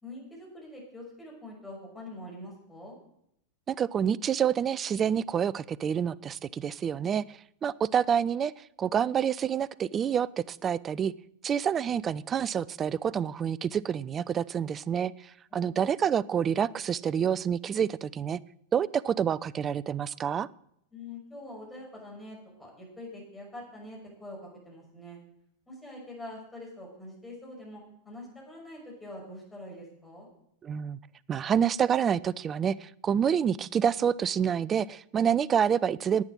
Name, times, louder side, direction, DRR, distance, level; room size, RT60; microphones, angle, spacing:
voice 1, 0.0-3.0 15.5-15.9 20.9-25.2 25.7-30.3, left 1 dB, 10° left, -2 dB, 6.0 m, -45 dB
voice 2, 3.7-11.1 11.4-18.4 18.7-20.5 30.6-31.0 31.3-36.2, right 8 dB, 25° right, 20 dB, 0.4 m, -28 dB
11.0 x 8.9 x 7.6 m, 0.75 s
figure-of-eight pair, 90°, 0 cm